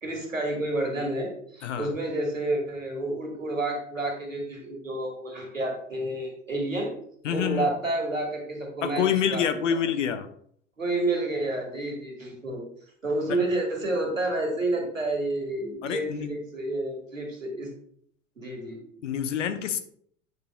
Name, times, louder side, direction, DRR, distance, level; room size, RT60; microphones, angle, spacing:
voice 1, 0.0-6.9 7.3-9.1 9.3-9.6 10.8-12.6 13.0-17.7 18.4-18.8, right 2 dB, 85° right, 1 dB, 1.8 m, -29 dB
voice 2, 1.6-1.9 7.2-7.7 8.8-10.3 13.3-13.4 15.8-16.3 19.0-19.8, left 8 dB, 70° left, 10 dB, 0.8 m, -27 dB
8.2 x 6.8 x 2.3 m, 0.63 s
figure-of-eight pair, 75°, 38 cm